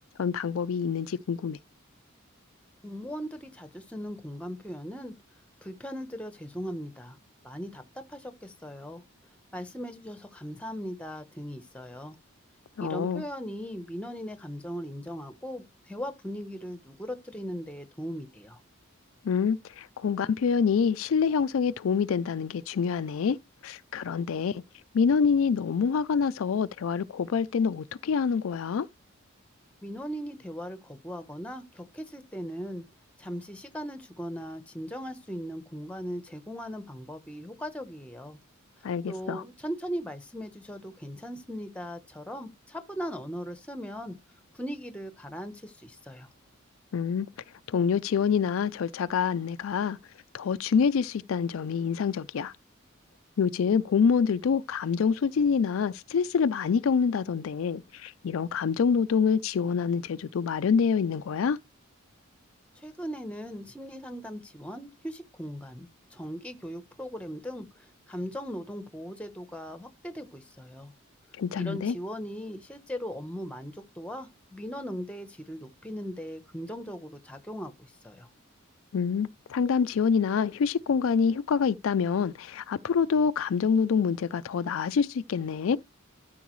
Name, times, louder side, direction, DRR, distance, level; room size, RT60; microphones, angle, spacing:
voice 1, 0.2-1.6 12.8-13.2 19.2-23.4 23.6-24.6 24.9-28.9 38.8-39.4 46.9-47.3 47.7-50.0 50.3-52.5 53.4-61.6 71.4-72.0 78.9-85.8, left 6 dB, 70° left, 0.4 m, -26 dB
voice 2, 2.8-5.1 5.6-7.2 7.4-9.0 9.5-12.2 12.8-18.6 29.8-32.8 33.2-38.4 39.1-44.2 44.5-46.3 62.8-70.9 71.5-78.3, equal, 5° left, 0.9 m, -38 dB
13.0 x 4.4 x 3.1 m
head